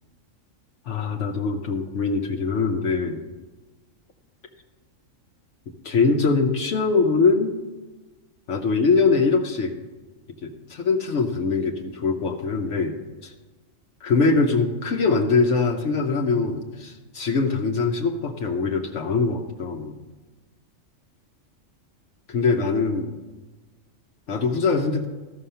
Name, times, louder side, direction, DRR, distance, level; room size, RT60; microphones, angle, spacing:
voice 1, 0.9-3.2 5.8-7.5 8.5-9.8 10.4-13.3 14.0-20.0 22.3-23.2 24.3-25.1, left 4 dB, 65° left, 3 dB, 1.1 m, -22 dB
13.0 x 6.3 x 5.6 m, 1.2 s
omnidirectional pair, 1.4 m